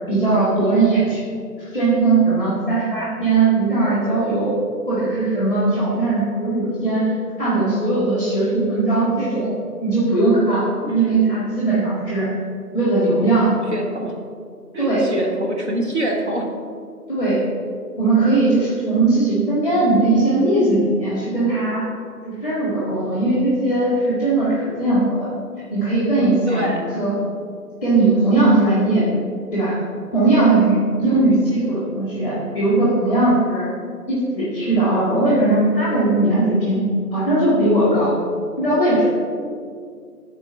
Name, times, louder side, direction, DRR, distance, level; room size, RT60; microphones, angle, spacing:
voice 1, 0.1-1.2 1.6-4.6 4.9-9.5 9.8-12.3 12.7-13.5 14.8-15.0 17.1-17.4 18.0-21.8 22.2-25.3 25.7-26.7 27.0-27.2 27.8-29.1 29.5-29.8 30.1-33.7 34.1-36.8 37.1-38.2 38.6-39.1, right 2 dB, 5° right, -9 dB, 1.2 m, -19 dB
voice 2, 10.8-11.3 13.7-14.1 14.7-16.5 26.5-26.9 31.0-31.4, right 1 dB, 45° right, 0 dB, 1.1 m, -25 dB
12.0 x 4.5 x 5.5 m, 2.1 s
figure-of-eight pair, 165°, 48 cm